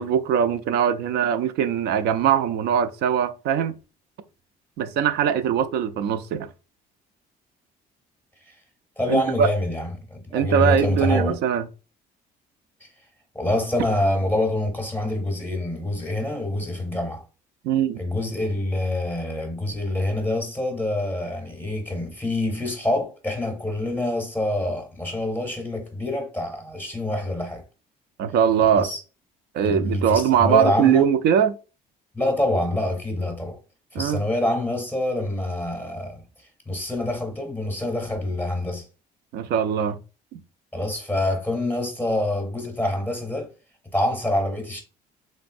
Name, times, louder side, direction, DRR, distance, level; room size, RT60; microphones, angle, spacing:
voice 1, 0.0-3.7 4.8-6.5 9.1-9.5 10.3-11.6 17.6-18.0 28.2-28.9 29.5-31.6 34.0-34.2 39.3-40.0, right 8 dB, 75° right, 0.4 m, -21 dB
voice 2, 9.0-11.4 12.8-12.9 13.3-17.2 18.0-27.6 28.8-29.0 29.6-31.0 32.1-33.6 33.9-36.2 36.7-38.8 40.7-43.5 43.9-44.8, left 1 dB, 10° left, 0.7 m, -26 dB
3.1 x 2.5 x 2.5 m
cardioid pair, 110°, 17 cm